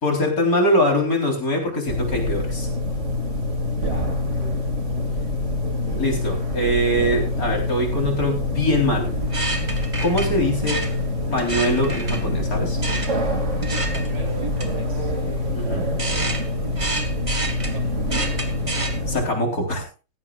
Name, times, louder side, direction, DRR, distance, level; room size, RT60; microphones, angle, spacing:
voice 1, 0.0-2.7 6.0-9.1 10.0-10.8 11.3-12.8 15.5-15.8 19.1-19.8, left 1 dB, 50° left, 1 dB, 4.3 m, -22 dB
sound 1, 1.9-19.3, left 1 dB, 40° right, 2.6 m, -25 dB
voice 2, 3.7-4.6 4.9-5.5 13.9-15.1 17.7-17.9, right 3 dB, 75° right, 3 dB, 3.6 m, -40 dB
sound 2, 8.9-19.0, right 2 dB, 20° right, 1.3 m, -31 dB
17.0 x 14.0 x 2.4 m, 0.31 s
omnidirectional pair, 1.9 m